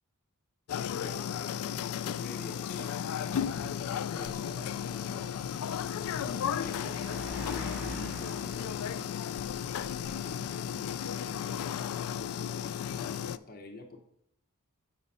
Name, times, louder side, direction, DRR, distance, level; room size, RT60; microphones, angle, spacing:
sound 1, 0.7-13.4, left 9 dB, 65° left, 0.3 m, -34 dB
voice 1, 0.8-3.5 3.9-5.4 6.2-7.0 7.4-9.1 10.0-11.7 12.1-14.0, left 3 dB, 40° left, 4 dB, 0.8 m, -47 dB
Car, 2.5-10.3, equal, 5° right, 2.2 m, -47 dB
Thunder, 3.2-10.5 11.7-11.8, right 1 dB, 85° right, 1.0 m, -54 dB
7.1 x 5.0 x 5.4 m, 0.75 s
head